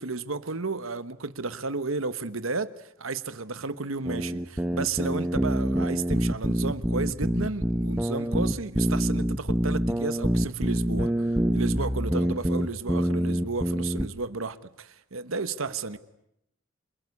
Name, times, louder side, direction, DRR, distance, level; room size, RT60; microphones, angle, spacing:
voice 1, 0.0-16.0, right 4 dB, 85° right, 1.3 m, -33 dB
sound 1, 4.0-14.1, equal, 10° right, 1.1 m, -26 dB
voice 2, 11.8-12.4 12.8-13.0 15.6-16.0, right 1 dB, 55° right, 5.5 m, -47 dB
27.5 x 22.5 x 9.7 m
head